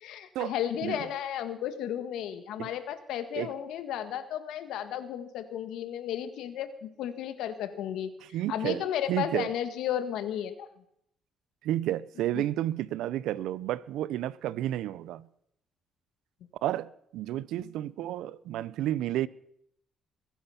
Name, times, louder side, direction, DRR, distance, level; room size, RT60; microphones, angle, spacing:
voice 1, 0.0-8.1 8.5-10.7 12.3-12.4, left 10 dB, 85° left, 1.7 m, -33 dB
voice 2, 8.3-8.8 9.1-9.5 11.6-15.3 16.6-19.3, right 13 dB, 90° right, 0.5 m, -31 dB
22.0 x 10.0 x 5.8 m
cardioid pair, 90°, 0 cm